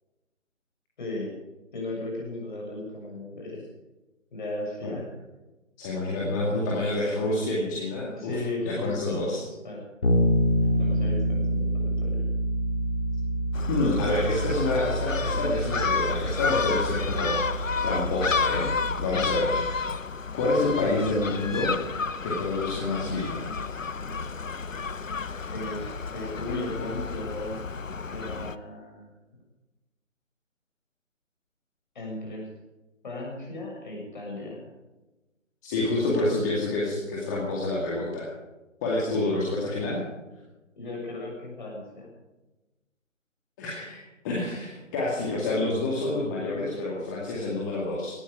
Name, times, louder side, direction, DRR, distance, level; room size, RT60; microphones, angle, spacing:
voice 1, 1.0-1.3 1.7-3.6 4.3-5.1 6.2-6.7 8.2-9.8 10.5-12.3 20.7-21.1 25.5-27.6 28.1-29.2 32.0-32.5 33.0-34.7 40.8-42.1, left 2 dB, 35° left, 0 dB, 7.0 m, -36 dB
voice 2, 5.8-8.3 8.6-9.4 13.7-18.7 19.0-19.9 20.3-21.8 22.2-23.4 35.6-38.3 38.8-40.0 43.6-48.2, left 2 dB, 15° left, -5 dB, 2.2 m, -28 dB
Bass guitar, 10.0-19.8, right 1 dB, 60° left, 3.8 m, -28 dB
Gull seagull, 13.5-28.6, left 5 dB, 80° left, 0.9 m, -31 dB
18.5 x 14.5 x 4.9 m, 1.1 s
figure-of-eight pair, 155°, 39 cm